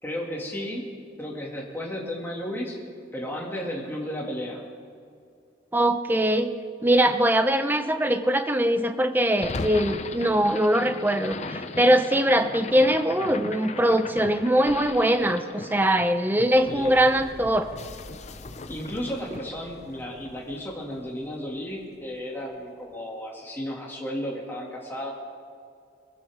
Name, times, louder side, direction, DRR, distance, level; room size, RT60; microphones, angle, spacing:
voice 1, 0.0-0.9 1.2-2.8 3.1-4.6 16.7-16.9 18.7-25.1, equal, 10° left, -3 dB, 2.3 m, -33 dB
voice 2, 5.7-6.5 6.8-17.7, right 1 dB, 10° right, 8 dB, 0.7 m, -22 dB
sound 1, 9.3-21.6, left 3 dB, 40° left, 0.6 m, -38 dB
23.0 x 15.5 x 3.6 m, 2.3 s
head